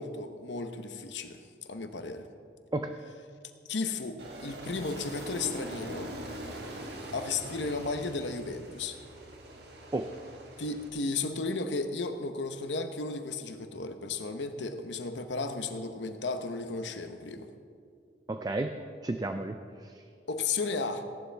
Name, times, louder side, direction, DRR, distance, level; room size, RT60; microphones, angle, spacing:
voice 1, 0.0-1.4 1.7-2.3 3.7-6.1 7.1-9.0 10.6-17.5 20.3-21.0, left 3 dB, 85° left, 7 dB, 0.9 m, -34 dB
Aircraft, 4.2-10.9, right 1 dB, 65° right, 1.5 m, -43 dB
voice 2, 18.3-20.0, right 2 dB, 20° right, 7 dB, 0.4 m, -33 dB
17.0 x 11.5 x 3.4 m, 2.3 s
head